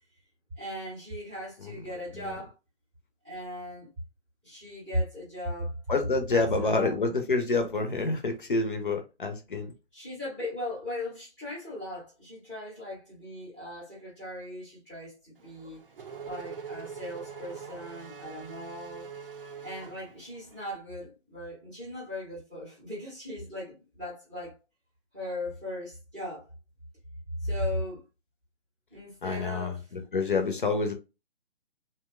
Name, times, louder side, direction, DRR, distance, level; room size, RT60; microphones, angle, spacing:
voice 1, 0.6-2.5 3.2-3.9 4.4-5.8 6.3-7.0 9.9-15.8 16.2-19.1 19.6-24.6 25.1-26.5 27.4-28.0 28.9-30.1, left 1 dB, 5° right, 0.6 m, -37 dB
voice 2, 5.9-9.7 29.2-29.7 30.1-30.9, left 3 dB, 50° left, 0.5 m, -28 dB
Race car auto racing / Accelerating revving vroom, 15.4-20.6, right 6 dB, 55° right, 0.5 m, -43 dB
2.7 x 2.1 x 2.2 m
figure-of-eight pair, 140°, 34 cm